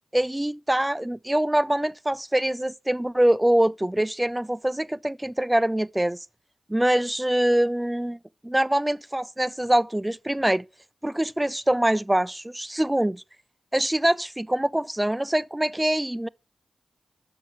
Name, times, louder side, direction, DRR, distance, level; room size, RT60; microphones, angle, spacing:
voice 1, 0.1-6.2 6.7-8.2 8.4-10.6 11.0-13.2 13.7-16.3, right 1 dB, 15° right, 0.3 m, -24 dB
6.3 x 5.4 x 5.7 m
cardioid pair, 45°, 0 cm